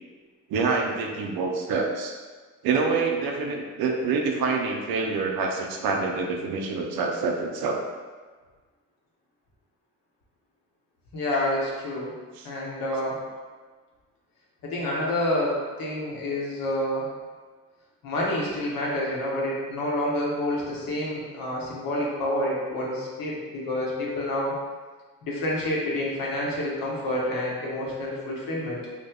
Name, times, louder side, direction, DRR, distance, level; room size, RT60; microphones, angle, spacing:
voice 1, 0.5-2.1 2.6-7.8 12.4-12.5, right 4 dB, 75° right, 1 dB, 0.5 m, -26 dB
voice 2, 11.1-12.1 12.4-13.2 14.6-17.1 18.0-24.5 25.2-28.8, left 1 dB, 70° left, -4 dB, 1.0 m, -28 dB
3.2 x 2.0 x 3.5 m, 1.4 s
supercardioid pair, 60°, 36 cm